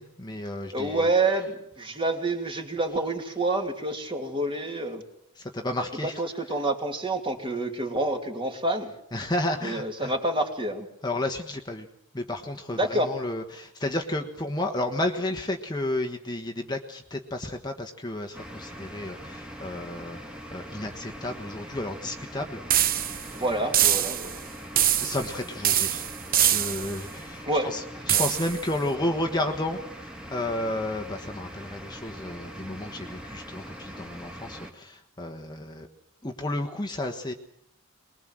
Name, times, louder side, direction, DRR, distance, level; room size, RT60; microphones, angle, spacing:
voice 1, 0.0-1.0 5.4-6.2 9.1-10.1 11.0-11.9 12.1-22.6 22.9-23.4 25.0-26.1 26.4-35.9 36.2-37.3, left 1 dB, 20° left, 3 dB, 1.4 m, -32 dB
voice 2, 0.7-5.0 6.2-8.9 9.6-10.9 12.8-13.1 23.3-24.4 27.5-27.7 28.1-28.3, right 2 dB, 25° right, 4 dB, 2.7 m, -28 dB
sound 1, 18.3-34.7, equal, 5° right, 2.2 m, -42 dB
sound 2, 22.7-23.3 23.7-24.4 24.8-25.3 25.6-27.0 28.1-28.6, right 11 dB, 40° right, 0.9 m, -24 dB
23.5 x 21.0 x 7.7 m, 0.74 s
head